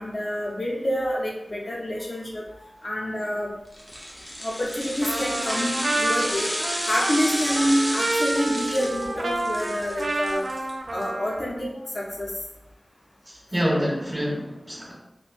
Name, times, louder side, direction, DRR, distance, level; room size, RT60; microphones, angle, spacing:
voice 1, 0.0-3.5 4.4-6.5 6.9-10.4 10.9-11.7 11.9-12.3, equal, 55° left, -3 dB, 0.6 m, -27 dB
sound 1, 3.7-11.0 11.4-11.5, equal, 10° left, 0.8 m, -31 dB
Trumpet, 5.0-11.6, right 2 dB, 90° right, 0.3 m, -29 dB
voice 2, 13.3-14.9, equal, 10° right, -5 dB, 1.2 m, -27 dB
4.2 x 2.1 x 2.4 m, 0.89 s
wide cardioid pair, 70°, 0 cm